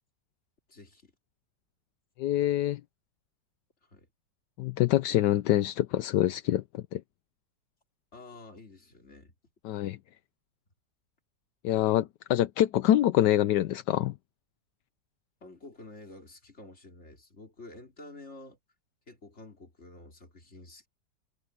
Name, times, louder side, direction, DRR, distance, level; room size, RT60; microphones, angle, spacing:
voice 1, 0.7-1.1 3.8-4.1 8.1-9.3 15.4-18.6 19.1-20.9, left 2 dB, 40° left, 4.0 m, -49 dB
voice 2, 2.2-2.8 4.6-7.0 9.6-10.0 11.6-14.1, left 13 dB, 75° left, 1.3 m, -25 dB
omnidirectional pair, 1.9 m